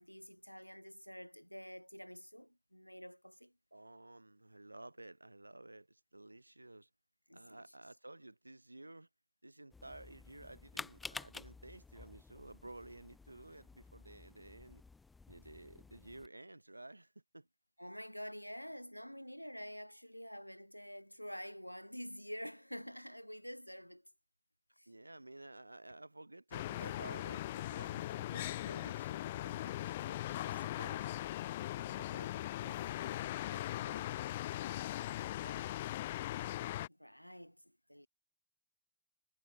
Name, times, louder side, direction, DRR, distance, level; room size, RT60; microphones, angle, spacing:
voice 1, 0.0-3.5 7.3-7.7 17.8-24.1 24.8-24.9 30.0-30.6 36.9-38.1, equal, 90° left, 2.2 m, -48 dB
voice 2, 3.7-6.9 7.3-9.1 9.4-14.8 15.3-17.5 24.9-30.0 30.4-31.2 31.7-36.0, right 2 dB, 85° right, 7.6 m, -54 dB
sound 1, 9.7-16.3, left 4 dB, 10° left, 7.2 m, -51 dB
sound 2, 26.5-36.9, left 14 dB, 55° left, 0.6 m, -40 dB
figure-of-eight pair, 90°, 0 cm